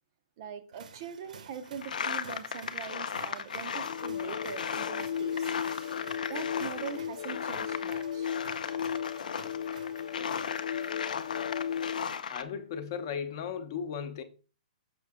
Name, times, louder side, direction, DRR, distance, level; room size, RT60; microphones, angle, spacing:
voice 1, 0.4-5.5 6.3-8.3, right 7 dB, 25° right, 0.5 m, -42 dB
sound 1, 0.7-11.1, right 6 dB, 75° right, 0.9 m, -53 dB
sound 2, 1.8-7.0 7.2-12.4, left 6 dB, 90° left, 0.7 m, -36 dB
sound 3, 3.8-12.2, left 8 dB, 55° left, 0.4 m, -36 dB
voice 2, 12.3-14.2, left 7 dB, 30° left, 0.8 m, -36 dB
6.7 x 5.7 x 3.6 m
hypercardioid pair, 175°, 4 cm